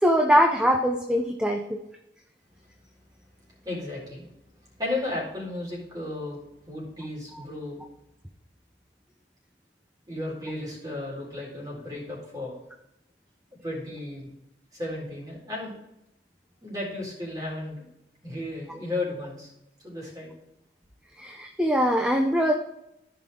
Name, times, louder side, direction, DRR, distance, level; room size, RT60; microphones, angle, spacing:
voice 1, 0.0-1.8 7.3-7.4 21.2-22.5, equal, 5° right, 4 dB, 0.6 m, -22 dB
voice 2, 3.6-4.3 4.8-6.4 6.7-7.8 10.1-12.5 13.6-14.3 14.7-15.8 16.6-17.8 18.2-19.5 19.8-20.3, left 2 dB, 20° right, -4 dB, 4.0 m, -34 dB
14.5 x 5.8 x 3.6 m, 0.86 s
head